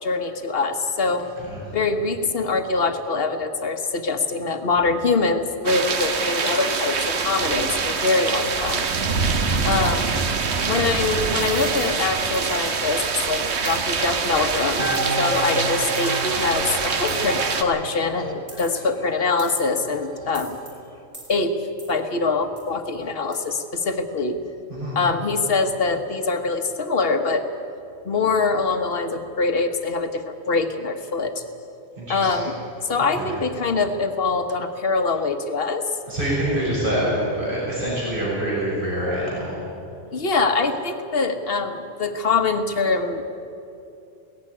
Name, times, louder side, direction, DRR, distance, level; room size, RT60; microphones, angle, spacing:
voice 1, 0.0-1.3 1.7-8.9 9.6-10.1 10.7-20.6 21.3-21.6 21.9-24.4 24.9-27.5 28.0-31.4 32.1-32.6 32.8-35.9 40.1-43.3, left 4 dB, 55° left, 8 dB, 1.4 m, -24 dB
sound 1, 5.6-17.6, right 5 dB, 70° right, 1.4 m, -24 dB
sound 2, 11.4-11.9 12.3-12.6 13.6-13.8 14.9-15.2 16.0-16.1 17.1-17.4 18.5-18.9 19.4-19.8 20.3-20.7 21.1-21.4 21.8-22.0 22.6-22.7 23.3-23.4, right 1 dB, 35° right, 4.1 m, -41 dB
sound 3, 14.8-20.4 20.6-20.7, right 1 dB, 20° left, 2.0 m, -30 dB
voice 2, 32.0-32.5 33.2-33.4 36.1-39.6, right 1 dB, 50° right, -6 dB, 6.4 m, -26 dB
17.5 x 15.0 x 9.9 m, 2.7 s
omnidirectional pair, 1.2 m